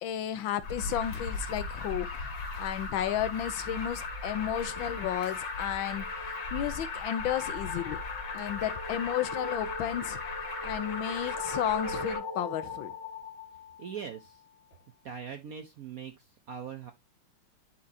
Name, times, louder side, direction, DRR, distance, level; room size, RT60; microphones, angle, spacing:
voice 1, 0.0-2.1 2.6-6.1 6.5-8.0 8.3-10.2 10.6-12.9, left 11 dB, 75° left, 1.3 m, -33 dB
Alarm, 0.6-12.2, left 3 dB, 45° left, 1.9 m, -37 dB
sound 1, 3.1-14.5, left 3 dB, 15° left, 1.0 m, -41 dB
voice 2, 13.8-14.4 15.0-16.9, right 7 dB, 65° right, 0.9 m, -41 dB
11.0 x 4.5 x 2.7 m
omnidirectional pair, 2.4 m